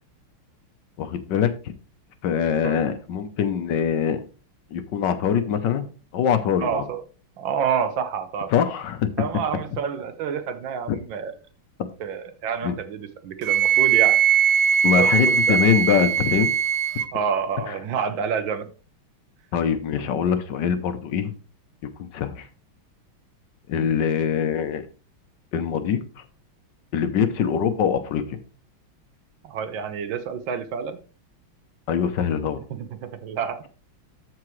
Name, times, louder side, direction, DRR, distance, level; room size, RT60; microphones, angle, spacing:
voice 1, 1.0-1.5 2.2-4.2 4.7-5.9 6.1-6.7 8.5-9.1 12.6-12.7 14.8-16.5 17.7-17.8 19.5-21.3 22.0-22.5 23.7-24.8 25.5-26.0 26.9-28.2 31.9-32.6, left 8 dB, 65° left, 1.3 m, -23 dB
voice 2, 6.6-7.0 7.4-8.5 9.2-11.3 12.0-14.2 15.0-15.6 17.1-18.7 29.4-31.0 32.7-33.7, right 7 dB, 70° right, 1.5 m, -28 dB
Wind instrument woodwind instrument, 13.4-17.1, right 8 dB, 85° right, 1.5 m, -20 dB
14.0 x 4.8 x 3.1 m
omnidirectional pair, 2.3 m